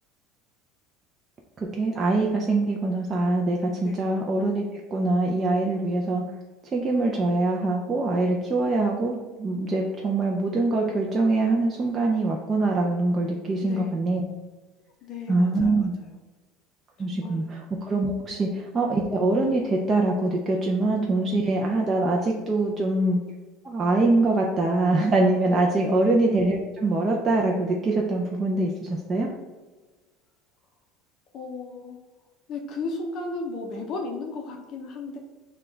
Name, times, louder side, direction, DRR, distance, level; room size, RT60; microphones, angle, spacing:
voice 1, 1.6-4.6 4.9-6.2 6.7-14.2 15.3-15.9 17.0-23.2 23.6-29.3, right 2 dB, 20° right, -1 dB, 0.4 m, -24 dB
voice 2, 13.6-13.9 15.0-16.2 17.1-17.5 18.3-18.5 25.7-26.1 31.3-32.0 32.5-35.2, left 3 dB, 40° left, 2 dB, 0.6 m, -35 dB
5.9 x 2.2 x 3.8 m, 1.3 s
cardioid pair, 160°, 0 cm